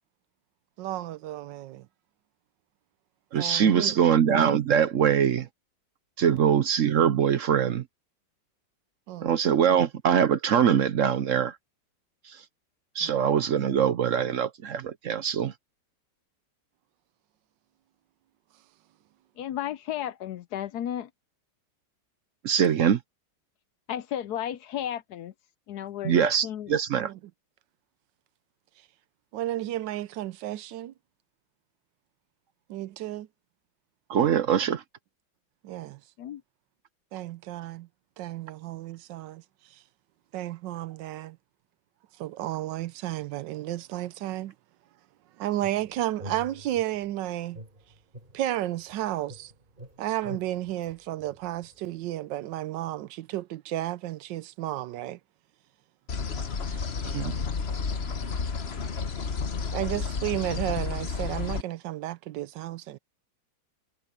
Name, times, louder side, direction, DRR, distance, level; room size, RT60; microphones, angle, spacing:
voice 1, 0.8-1.9 3.4-4.0 6.3-6.4 9.1-9.3 13.0-13.2 27.0-27.2 29.3-30.9 32.7-33.3 35.6-36.0 37.1-37.9 38.2-39.4 39.7-39.8 40.3-41.4 42.2-44.5 45.4-47.6 48.3-49.5 50.0-55.2 56.7-56.9 59.7-63.0, right 14 dB, 85° right, 1.3 m, -33 dB
voice 2, 3.3-5.5 6.2-7.8 9.2-11.6 13.0-15.5 22.4-23.0 26.0-27.1 34.1-34.8 57.1-57.3, right 8 dB, 60° right, 0.9 m, -23 dB
voice 3, 19.4-21.1 23.9-25.3 25.7-26.7 36.2-36.4, left 11 dB, 70° left, 1.1 m, -33 dB
sound 1, 45.6-47.1 47.5-49.0 49.3-51.8, right 1 dB, 25° right, 5.5 m, -46 dB
sound 2, 56.1-61.6, left 5 dB, 40° left, 1.2 m, -31 dB
omnidirectional pair, 1.9 m